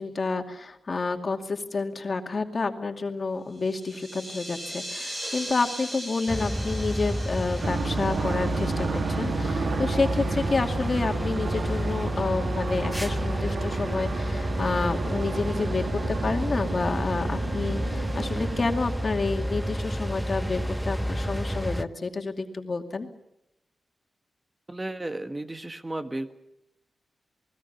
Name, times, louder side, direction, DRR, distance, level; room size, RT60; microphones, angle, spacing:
voice 1, 0.0-23.1, left 3 dB, 45° left, 5 dB, 2.4 m, -29 dB
sound 1, 3.5-9.6, right 1 dB, 40° right, 7.9 m, -39 dB
sound 2, 6.3-21.8, equal, 5° right, 0.9 m, -30 dB
sound 3, 7.6-18.7, right 5 dB, 80° right, 1.6 m, -33 dB
voice 2, 24.7-26.3, right 2 dB, 25° right, 8 dB, 1.6 m, -34 dB
28.0 x 20.0 x 7.0 m, 0.83 s
cardioid pair, 70°, 0 cm